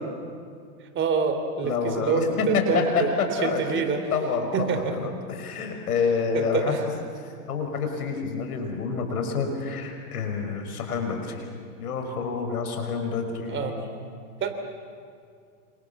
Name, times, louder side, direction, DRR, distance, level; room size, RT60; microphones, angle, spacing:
voice 1, 0.9-3.1 3.4-4.0 4.5-4.9 6.3-6.8 13.5-13.7 14.4-14.5, right 5 dB, 25° right, 7 dB, 3.2 m, -26 dB
voice 2, 1.6-3.8 4.1-11.5 11.8-13.8, left 5 dB, 80° left, 5 dB, 6.0 m, -28 dB
28.0 x 26.5 x 7.3 m, 2.2 s
hypercardioid pair, 125°, 44 cm